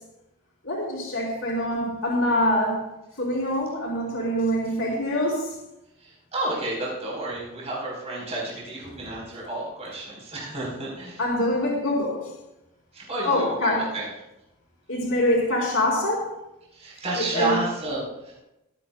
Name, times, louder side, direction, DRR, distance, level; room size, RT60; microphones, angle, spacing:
voice 1, 0.6-2.8 3.2-5.5 11.2-12.2 13.2-13.9 14.9-16.3 17.2-17.6, left 1 dB, 65° left, -4 dB, 3.9 m, -24 dB
voice 2, 6.0-11.2 12.9-14.1 16.7-18.4, right 2 dB, 30° right, -4 dB, 4.1 m, -31 dB
25.5 x 9.0 x 2.3 m, 0.93 s
head